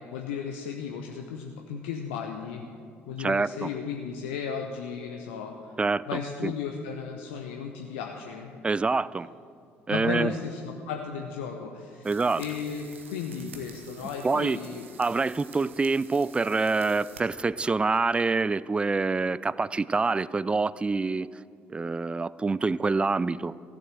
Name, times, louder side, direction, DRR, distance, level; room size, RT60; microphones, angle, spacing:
voice 1, 0.1-2.7 3.1-5.7 6.1-8.6 9.9-12.1 12.3-14.9, left 6 dB, 70° left, 2 dB, 0.8 m, -35 dB
voice 2, 3.2-3.7 5.8-6.5 8.6-9.3 9.9-10.3 12.0-12.4 14.2-14.6 15.0-21.3 21.7-23.5, right 4 dB, 15° right, 20 dB, 0.3 m, -26 dB
sound 1, 12.0-17.2, right 6 dB, 80° right, 1.0 m, -49 dB
15.0 x 7.8 x 7.5 m, 2.4 s
figure-of-eight pair, 50°, 7 cm